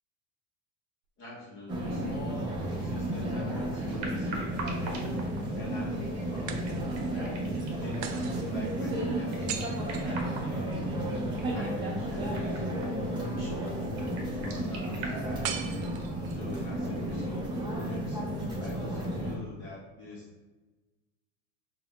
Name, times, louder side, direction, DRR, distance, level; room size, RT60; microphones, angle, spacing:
voice 1, 1.2-5.2 5.5-7.4 7.8-9.6 10.0-10.9 11.5-13.8 14.3-15.7 16.0-16.1 16.3-18.2 18.6-20.5, left 1 dB, 30° left, -5 dB, 0.9 m, -44 dB
sound 1, 1.7-19.4, right 1 dB, 10° right, 0.5 m, -33 dB
sound 2, 3.7-4.4 6.5-7.2 8.0-10.9 15.4-16.5, right 8 dB, 85° right, 0.6 m, -41 dB
sound 3, 4.0-15.1, right 3 dB, 45° right, 0.9 m, -45 dB
5.5 x 2.3 x 3.6 m, 1.2 s
supercardioid pair, 165°, 39 cm